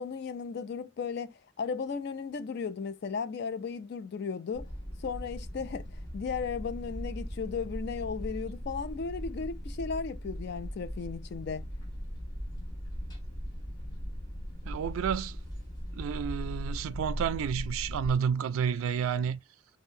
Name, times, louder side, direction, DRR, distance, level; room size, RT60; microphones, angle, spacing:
voice 1, 0.0-4.7 5.0-11.6, left 5 dB, 55° left, 0.3 m, -35 dB
sound 1, 4.5-18.1, equal, 20° left, 1.1 m, -39 dB
voice 2, 14.6-15.4 15.9-19.4, right 7 dB, 85° right, 0.3 m, -30 dB
3.6 x 2.1 x 2.6 m
head